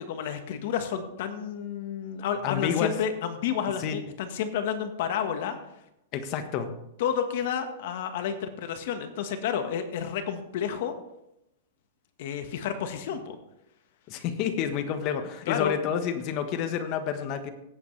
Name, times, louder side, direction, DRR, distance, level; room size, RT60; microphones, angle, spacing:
voice 1, 0.0-5.6 7.0-10.9 12.2-13.4 15.4-15.7, left 8 dB, 60° left, 7 dB, 1.4 m, -30 dB
voice 2, 2.4-2.9 3.8-4.0 6.1-6.7 14.1-17.5, left 8 dB, 35° left, 8 dB, 1.3 m, -29 dB
17.0 x 8.0 x 3.3 m, 0.82 s
hypercardioid pair, 150°, 0 cm